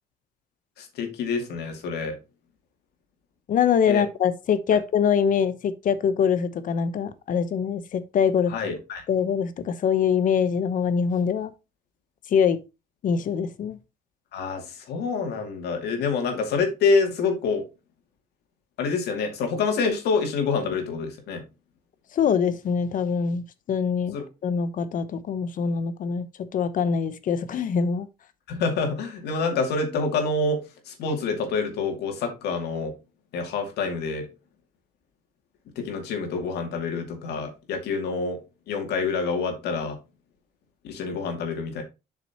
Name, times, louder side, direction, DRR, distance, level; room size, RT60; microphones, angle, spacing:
voice 1, 0.8-2.2 3.9-4.1 8.5-9.0 14.3-17.6 18.8-21.4 24.1-24.2 28.5-33.0 33.3-34.3 35.8-40.0 40.8-41.8, left 4 dB, 75° left, 2.4 m, -27 dB
voice 2, 3.5-8.5 9.1-11.5 12.3-12.6 13.0-13.8 22.1-24.2 24.4-26.3 26.5-28.1, left 7 dB, 50° left, 0.9 m, -24 dB
7.9 x 6.0 x 2.9 m
cardioid pair, 110°, 17 cm